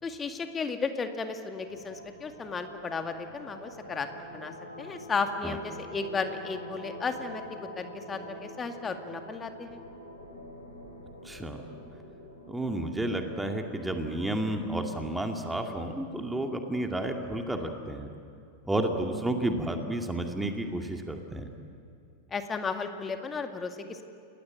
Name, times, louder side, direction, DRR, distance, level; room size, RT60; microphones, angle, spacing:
voice 1, 0.0-4.1 4.3-4.5 4.8-7.4 7.8-9.8 22.3-24.0, left 4 dB, 20° left, 7 dB, 2.1 m, -34 dB
sound 1, 1.5-14.6, equal, 90° left, 4.7 m, -46 dB
voice 2, 11.2-11.6 12.5-18.1 18.7-21.5, right 1 dB, 5° right, 4 dB, 2.3 m, -31 dB
29.0 x 20.5 x 9.1 m, 2.4 s
figure-of-eight pair, 90°, 0 cm